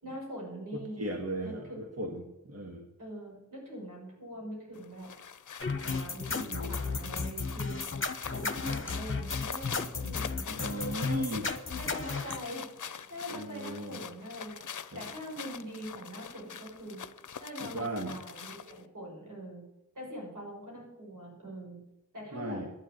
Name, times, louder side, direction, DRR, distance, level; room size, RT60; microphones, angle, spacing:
voice 1, 0.0-1.1 1.4-1.8 3.0-5.1 5.8-7.8 8.3-10.8 11.0-11.3 11.7-14.7 14.9-17.0 17.4-19.6 19.9-21.8 22.1-22.6, equal, 85° right, -2 dB, 6.1 m, -43 dB
voice 2, 0.7-2.9 6.3-6.7 10.4-11.5 13.3-14.0 14.9-15.0 17.6-18.2 22.3-22.7, right 1 dB, 50° right, 1 dB, 1.8 m, -37 dB
sound 1, 4.8-18.9, left 7 dB, 70° left, 0.6 m, -44 dB
sound 2, 5.6-12.4, left 4 dB, 40° left, 1.2 m, -34 dB
11.5 x 7.7 x 9.3 m, 0.96 s
wide cardioid pair, 75°, 31 cm